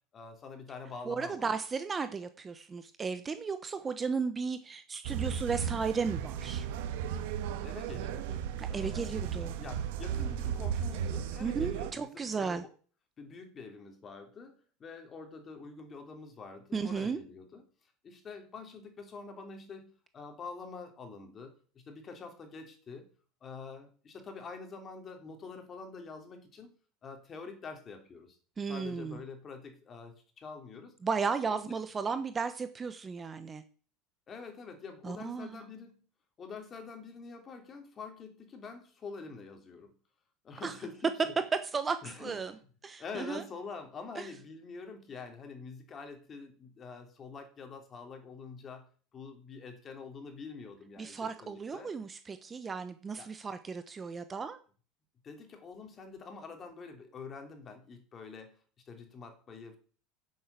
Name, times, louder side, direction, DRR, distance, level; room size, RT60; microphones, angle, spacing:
voice 1, 0.1-1.6 7.0-7.3 7.6-12.7 13.2-17.6 18.0-23.1 23.4-26.7 27.0-28.4 28.7-31.0 31.5-31.8 34.3-36.0 36.4-39.9 40.4-41.3 42.0-42.6 43.0-51.9 53.2-53.3 55.2-58.6 58.9-59.8, left 4 dB, 30° left, 5 dB, 3.3 m, -46 dB
voice 2, 1.1-6.7 8.6-9.5 11.4-12.6 16.7-17.2 28.6-29.2 31.0-33.6 35.0-35.6 40.6-40.7 41.7-42.5 42.8-43.4 44.2-44.3 51.0-54.6, right 5 dB, 20° right, 10 dB, 1.0 m, -35 dB
sound 1, 5.0-11.9, right 8 dB, 80° right, 1.6 m, -35 dB
11.0 x 7.9 x 8.3 m, 0.41 s
supercardioid pair, 130°, 0 cm